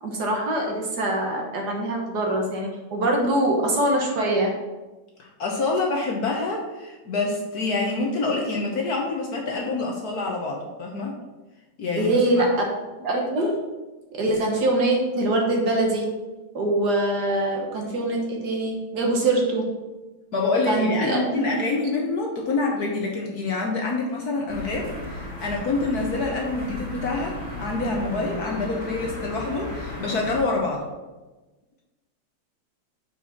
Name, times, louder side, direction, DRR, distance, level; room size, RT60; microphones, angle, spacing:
voice 1, 0.0-4.5 12.0-12.7 13.0-13.6 14.1-16.1 16.5-19.7 20.7-21.5, right 1 dB, 55° right, 0 dB, 1.5 m, -23 dB
voice 2, 5.2-11.2 11.8-12.1 12.3-12.5 20.3-30.9, left 3 dB, 55° left, 0 dB, 1.2 m, -26 dB
sound 1, 24.5-30.4, left 2 dB, 30° left, 2.8 m, -35 dB
5.6 x 4.6 x 5.9 m, 1.2 s
omnidirectional pair, 2.3 m